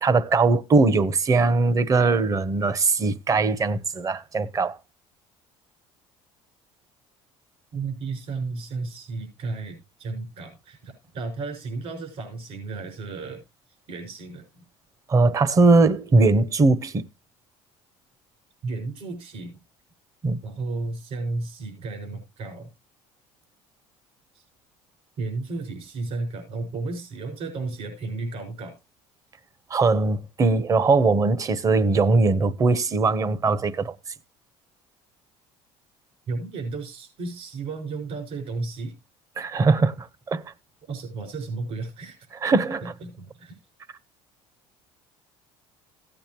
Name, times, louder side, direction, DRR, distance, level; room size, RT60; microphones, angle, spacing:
voice 1, 0.0-4.8 15.1-17.0 20.2-20.4 29.7-33.9 39.4-40.4 42.4-42.9, right 3 dB, 30° right, 0.9 m, -20 dB
voice 2, 7.7-13.4 13.9-14.6 18.6-19.6 20.4-22.7 24.3-24.4 25.2-28.8 36.3-38.9 40.8-42.2 42.5-43.6, right 3 dB, 60° right, 6.0 m, -33 dB
16.0 x 8.9 x 3.0 m
cardioid pair, 120°, 12 cm